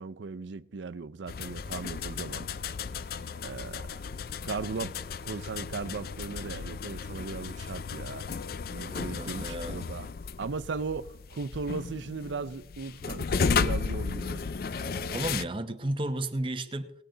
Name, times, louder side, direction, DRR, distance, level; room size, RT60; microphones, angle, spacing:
voice 1, 0.0-2.5 3.4-4.0 4.4-5.0 5.2-8.3 8.7-10.1 10.4-14.4, right 4 dB, 85° right, 0.5 m, -37 dB
sound 1, 1.3-15.4, left 5 dB, 55° left, 0.4 m, -34 dB
voice 2, 8.9-9.8 15.1-16.9, right 1 dB, 30° right, 0.9 m, -33 dB
19.5 x 9.1 x 3.9 m
head